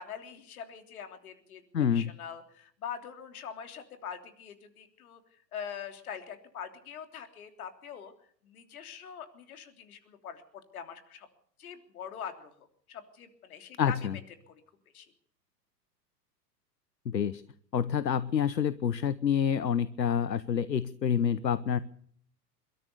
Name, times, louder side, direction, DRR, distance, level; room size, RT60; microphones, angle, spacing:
voice 1, 0.0-1.6 1.9-5.2 5.5-8.1 8.4-10.4 10.7-11.3 11.6-14.2 14.5-14.6 14.9-15.0, left 8 dB, 55° left, 6 dB, 3.4 m, -43 dB
voice 2, 1.7-2.1 13.8-14.1 17.1-17.4 17.7-21.8, left 8 dB, 80° left, 17 dB, 1.0 m, -27 dB
28.5 x 13.5 x 6.9 m, 0.62 s
figure-of-eight pair, 100°, 50 cm